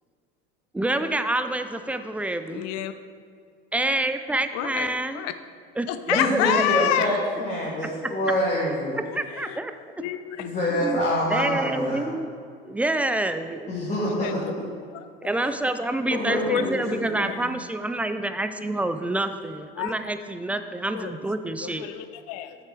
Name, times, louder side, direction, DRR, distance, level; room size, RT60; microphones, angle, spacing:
voice 1, 0.7-2.7 3.7-5.2 5.8-6.9 9.1-9.7 10.8-11.0 11.3-12.3 12.7-13.7 15.2-21.9, right 2 dB, 5° right, 9 dB, 0.3 m, -27 dB
voice 2, 2.5-2.9 4.5-5.3 5.9-7.1 9.1-9.6 10.0-10.5 14.1-14.4 14.9-15.0 16.5-16.6 16.9-17.0 17.3-17.4 19.8-19.9 20.9-21.1 21.6-22.6, left 11 dB, 60° left, 11 dB, 0.6 m, -28 dB
voice 3, 6.1-9.0 10.4-12.1 13.7-14.6 15.4-15.5 16.1-17.4, left 1 dB, 25° left, -6 dB, 1.7 m, -26 dB
6.7 x 5.9 x 4.6 m, 2.2 s
hypercardioid pair, 80°, 29 cm